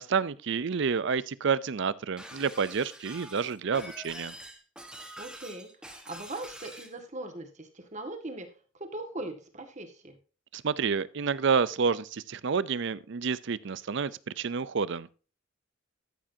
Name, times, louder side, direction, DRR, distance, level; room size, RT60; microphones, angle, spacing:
voice 1, 0.0-4.3 10.5-14.1 14.4-15.1, right 5 dB, 60° right, 0.5 m, -29 dB
Shatter, 2.2-6.9, right 1 dB, 5° right, 1.4 m, -45 dB
voice 2, 5.2-5.7 6.1-8.5 8.8-10.1, right 2 dB, 35° right, 1.8 m, -40 dB
13.5 x 7.5 x 2.8 m
head